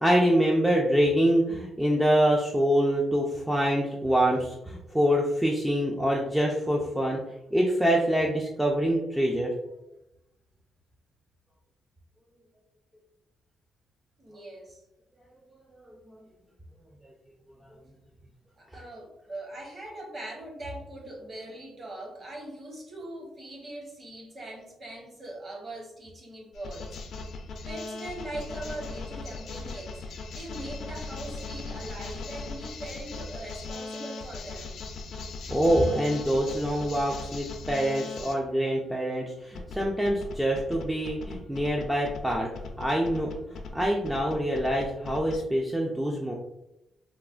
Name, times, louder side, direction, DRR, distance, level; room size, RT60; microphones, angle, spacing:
voice 1, 0.0-7.2 7.5-9.5 35.5-42.5 42.8-46.3, equal, 5° right, -2 dB, 0.3 m, -25 dB
voice 2, 14.2-14.8 18.6-27.0 27.7-30.0 30.3-35.0, right 1 dB, 35° right, -1 dB, 0.9 m, -41 dB
sound 1, 26.5-38.3 39.5-45.4, left 3 dB, 70° left, 0.4 m, -39 dB
3.2 x 2.1 x 2.4 m, 0.88 s
cardioid pair, 125°, 0 cm